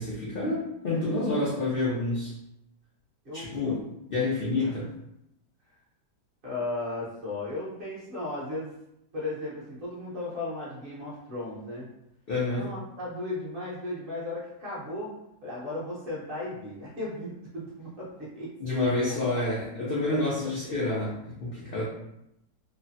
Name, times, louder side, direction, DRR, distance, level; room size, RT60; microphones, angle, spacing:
voice 1, 0.0-2.3 3.3-3.8 4.1-4.9 12.3-12.7 18.6-21.9, left 2 dB, 60° left, -6 dB, 0.5 m, -28 dB
voice 2, 3.2-3.8 4.6-4.7 6.4-8.7 9.1-11.9 12.5-15.1 15.4-18.5 20.1-20.7 21.6-21.9, left 2 dB, 40° right, -6 dB, 0.9 m, -36 dB
3.1 x 2.1 x 2.6 m, 0.82 s
omnidirectional pair, 1.7 m